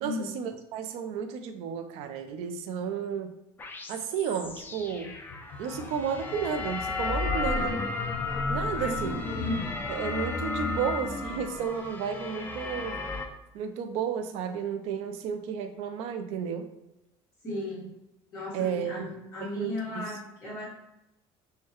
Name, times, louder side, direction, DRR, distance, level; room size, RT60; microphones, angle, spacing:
voice 1, 0.0-3.4 3.9-5.1 5.6-7.8 8.5-9.2 9.9-13.0 13.5-16.7 18.5-20.1, right 7 dB, 75° right, 7 dB, 0.5 m, -33 dB
sound 1, 3.6-13.3, left 3 dB, 20° left, 0.4 m, -33 dB
sound 2, 4.4-9.7, left 5 dB, 80° left, 0.7 m, -42 dB
voice 2, 7.3-7.8 8.8-9.6 17.4-17.8 18.3-20.7, left 1 dB, 35° left, -8 dB, 1.5 m, -35 dB
6.4 x 2.2 x 3.0 m, 0.93 s
cardioid pair, 150°, 11 cm